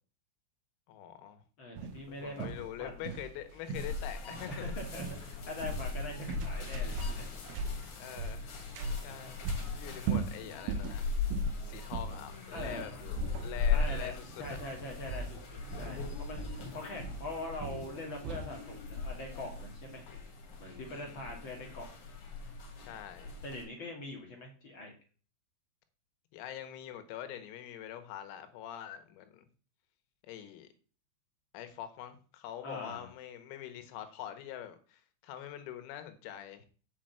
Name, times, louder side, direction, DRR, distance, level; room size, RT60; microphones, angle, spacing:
voice 1, 0.9-1.4 2.1-4.7 8.0-8.6 9.0-9.4 9.7-11.1 11.6-14.3 14.5-14.6 20.9-21.4 22.9-23.3 26.3-29.5 30.2-30.7 31.5-36.7, left 11 dB, 90° left, 4.0 m, -44 dB
voice 2, 1.6-2.5 2.8-3.0 4.5-7.2 9.0-9.2 12.5-13.0 13.7-20.0 20.6-21.9 23.4-24.9 32.6-33.1, left 2 dB, 75° left, 1.1 m, -43 dB
jf Footsteps, 1.8-18.6, right 3 dB, 80° right, 3.4 m, -39 dB
sound 1, 3.7-23.6, left 4 dB, 50° left, 2.7 m, -39 dB
8.4 x 5.8 x 7.7 m
omnidirectional pair, 5.9 m